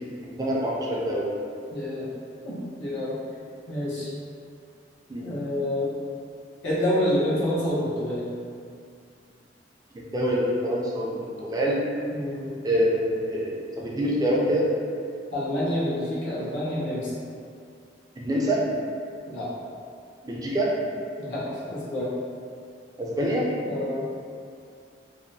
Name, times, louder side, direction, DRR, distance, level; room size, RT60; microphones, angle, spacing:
voice 1, 0.3-1.3 5.1-5.3 9.9-11.9 12.6-14.7 18.2-18.6 20.2-20.7 23.0-23.5, equal, 20° right, -4 dB, 0.4 m, -25 dB
voice 2, 1.7-2.1 2.4-3.1 3.7-4.1 5.2-5.9 6.6-8.3 12.1-12.5 15.3-17.1 19.3-19.5 21.2-22.1 23.6-24.1, left 1 dB, 90° left, -9 dB, 0.9 m, -28 dB
2.7 x 2.2 x 2.6 m, 2.3 s
head